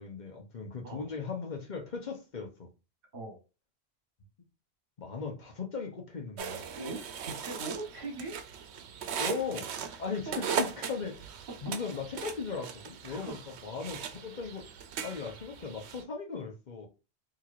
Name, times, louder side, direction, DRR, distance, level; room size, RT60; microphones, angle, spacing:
voice 1, 0.0-2.7 5.0-6.8 9.2-9.7 10.0-11.3 11.6-13.4 13.6-14.7 15.0-16.9, left 5 dB, 45° left, 0.9 m, -38 dB
sound 1, 6.4-16.0, right 7 dB, 85° right, 0.9 m, -38 dB
voice 2, 6.7-8.4 10.2-10.6 13.0-13.3, right 2 dB, 60° right, 1.4 m, -40 dB
4.5 x 2.9 x 2.5 m
omnidirectional pair, 1.1 m